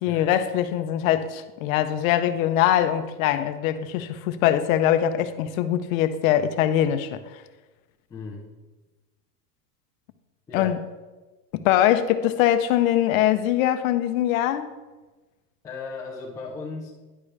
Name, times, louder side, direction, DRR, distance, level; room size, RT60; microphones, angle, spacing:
voice 1, 0.0-7.2 10.5-10.8 11.5-14.7, left 11 dB, 60° left, 10 dB, 0.7 m, -22 dB
voice 2, 8.1-8.5 10.5-10.8 15.6-16.9, left 4 dB, 10° left, -6 dB, 0.4 m, -36 dB
10.0 x 4.9 x 3.2 m, 1.2 s
supercardioid pair, 145°, 47 cm